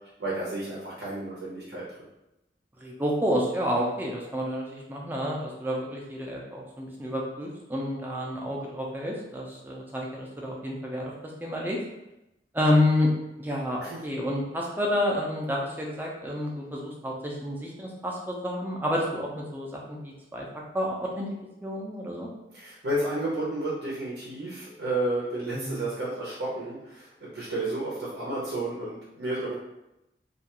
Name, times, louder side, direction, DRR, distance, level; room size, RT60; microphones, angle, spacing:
voice 1, 0.2-1.8 13.8-14.0 22.5-29.6, right 1 dB, 80° right, -6 dB, 0.6 m, -31 dB
voice 2, 2.8-11.1 11.4-11.8 12.5-13.1 13.4-20.5 20.7-21.3 21.6-22.3 25.5-25.8, left 1 dB, 10° right, -2 dB, 0.4 m, -29 dB
2.3 x 2.2 x 2.8 m, 0.91 s
head